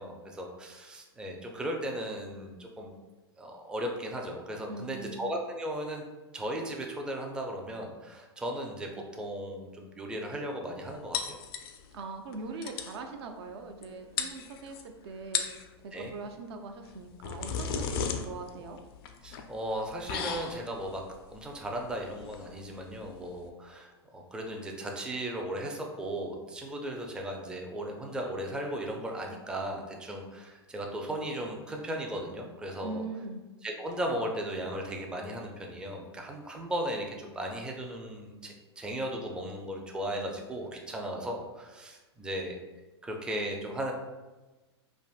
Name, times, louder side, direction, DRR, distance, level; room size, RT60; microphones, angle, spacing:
voice 1, 0.0-3.0 3.4-6.0 6.3-11.4 15.9-16.1 19.2-21.0 21.3-33.0 33.6-42.6 43.0-43.9, right 1 dB, 5° right, 1 dB, 0.4 m, -36 dB
voice 2, 4.7-5.2 11.9-15.4 15.8-18.8 32.8-33.4, right 3 dB, 70° right, 5 dB, 0.4 m, -41 dB
sound 1, 11.1-12.0 12.3-12.4 12.6-13.0 13.8-13.9 14.2-14.8 15.2-15.7 16.8-23.5, left 7 dB, 60° left, 0.4 m, -36 dB
3.4 x 2.5 x 2.4 m, 1.2 s
hypercardioid pair, 110°, 14 cm